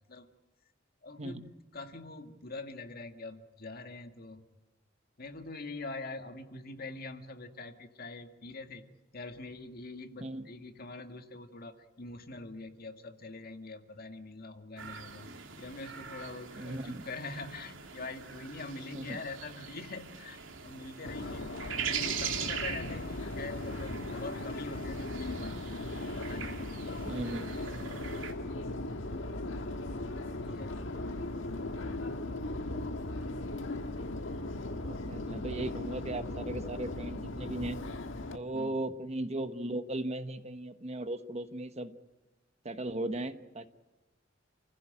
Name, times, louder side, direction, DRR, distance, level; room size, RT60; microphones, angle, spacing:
voice 1, 1.0-4.5 5.2-8.9 9.1-15.3 15.6-21.6 21.9-27.6 30.3-30.8 38.5-38.8, left 3 dB, 50° left, 6 dB, 2.0 m, -44 dB
sound 1, 14.8-28.3, right 7 dB, 80° right, 2.7 m, -42 dB
voice 2, 16.5-17.0 18.9-19.2 27.1-27.5 34.7-37.8 38.3-41.9 42.6-43.7, right 1 dB, 35° right, 10 dB, 1.2 m, -37 dB
Subway metro underground, 21.0-38.4, left 2 dB, 70° left, 1.5 m, -38 dB
29.0 x 16.0 x 8.9 m, 1.1 s
head